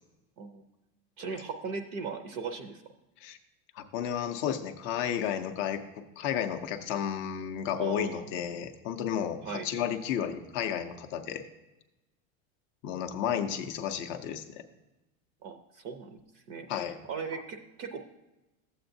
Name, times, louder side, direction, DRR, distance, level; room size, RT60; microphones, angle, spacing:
voice 1, 1.2-2.8 7.8-8.3 9.4-9.7 15.4-18.1, right 5 dB, 35° right, 7 dB, 0.5 m, -39 dB
voice 2, 3.7-11.4 12.8-14.6 16.7-17.0 17.3-17.4, left 9 dB, 30° left, 6 dB, 0.4 m, -32 dB
12.5 x 7.8 x 2.6 m, 1.0 s
supercardioid pair, 160°, 41 cm